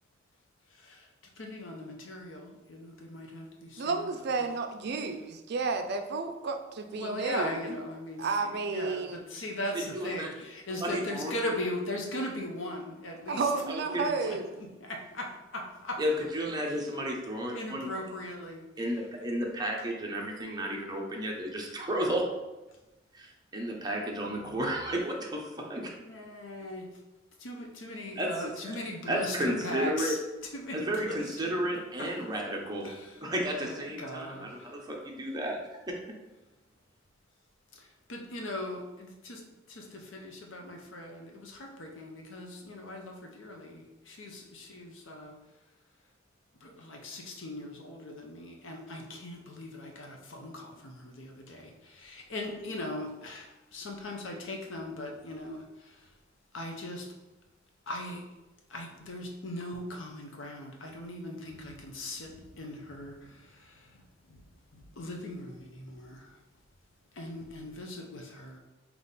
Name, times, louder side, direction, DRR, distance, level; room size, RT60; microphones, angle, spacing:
voice 1, 0.7-1.1 1.4-4.5 6.9-13.5 14.2-16.0 16.7-16.8 17.5-18.9 26.0-26.9 27.4-31.3 32.0-32.1 32.8-33.2 33.6-34.7 37.7-45.4 46.6-56.1 56.5-57.1 57.9-58.2 58.7-66.4 67.1-68.6, left 1 dB, 70° left, 2 dB, 0.7 m, -39 dB
voice 2, 3.8-7.8 8.2-9.2 13.3-14.5, right 4 dB, 60° right, 6 dB, 0.4 m, -32 dB
voice 3, 9.9-10.3 10.7-11.5 13.7-14.1 16.0-17.9 18.8-22.2 23.1-25.4 25.7-25.9 28.2-28.7 29.1-30.1 30.7-32.9 33.2-35.6, equal, 20° right, -1 dB, 0.7 m, -32 dB
3.6 x 2.9 x 4.0 m, 1.0 s
head